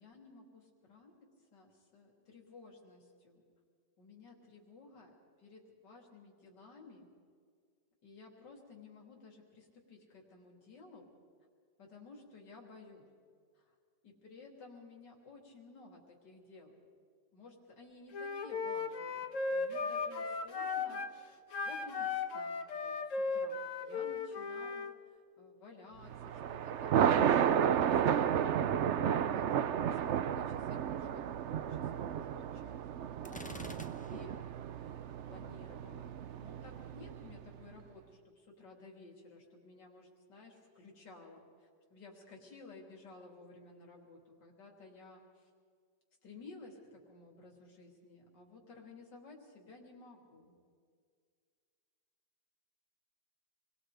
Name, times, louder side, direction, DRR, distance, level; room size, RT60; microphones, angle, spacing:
voice 1, 0.0-3.4 4.0-5.1 5.4-7.1 8.0-11.1 11.8-13.1 14.0-16.7 17.3-27.0 27.8-28.6 28.9-29.5 29.8-33.8 34.1-34.5 34.8-35.0 35.3-45.5 46.2-50.5, left 3 dB, 75° left, -1 dB, 3.8 m, -55 dB
Wind instrument woodwind instrument, 18.1-21.1 21.5-24.9, left 4 dB, 50° left, 1.4 m, -36 dB
Thunder, 26.1-37.4, right 9 dB, 65° right, 0.7 m, -32 dB
Gunshot gunfire, 33.2-34.5, left 1 dB, 10° left, 0.5 m, -48 dB
27.5 x 21.5 x 5.0 m, 2.1 s
omnidirectional pair, 1.9 m